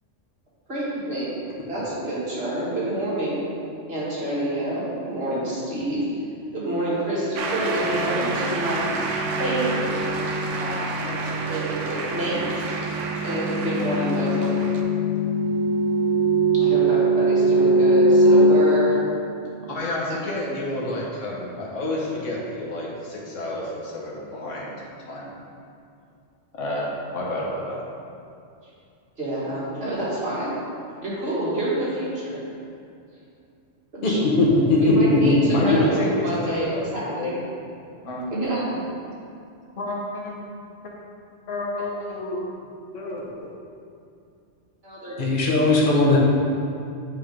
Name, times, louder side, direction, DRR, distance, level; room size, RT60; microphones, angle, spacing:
voice 1, 0.7-1.3 1.7-3.5 3.9-6.1 6.5-8.9 9.4-10.2 10.6-11.2 11.5-12.7 13.2-14.5 16.5-18.9 20.1-20.2 29.2-30.5 31.0-32.4 34.0-34.5 34.8-37.3 38.3-38.6 44.8-45.3 45.9-46.2, right 1 dB, 55° right, -8 dB, 1.9 m, -27 dB
sound 1, 7.0-19.7, right 1 dB, 20° right, 0.7 m, -22 dB
Shout / Cheering / Applause, 7.4-14.8, right 3 dB, 80° right, 1.0 m, -30 dB
voice 2, 19.7-24.8 25.1-25.3 26.5-27.8 35.5-36.1 36.4-36.7 37.0-37.6 38.0-38.3 39.8-40.4 40.8-40.9 41.5-42.4 42.9-43.5, left 1 dB, 80° left, -4 dB, 1.4 m, -30 dB
voice 3, 34.0-35.3 35.7-35.8 45.2-46.2, left 2 dB, 45° left, -3 dB, 1.1 m, -18 dB
7.9 x 3.5 x 5.1 m, 2.5 s
omnidirectional pair, 1.3 m